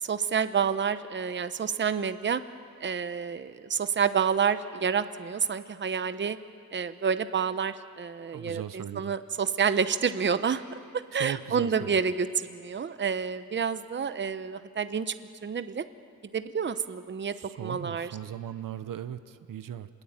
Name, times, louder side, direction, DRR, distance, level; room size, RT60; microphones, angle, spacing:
voice 1, 0.0-2.4 2.8-6.4 6.7-10.6 11.1-15.1 15.4-15.8 16.3-17.3 17.6-18.2, right 6 dB, 35° right, 11 dB, 0.9 m, -29 dB
voice 2, 8.3-9.1 11.1-12.0 17.3-19.9, right 10 dB, 70° right, 12 dB, 1.0 m, -38 dB
27.5 x 21.0 x 9.0 m, 2.2 s
wide cardioid pair, 120°, 34 cm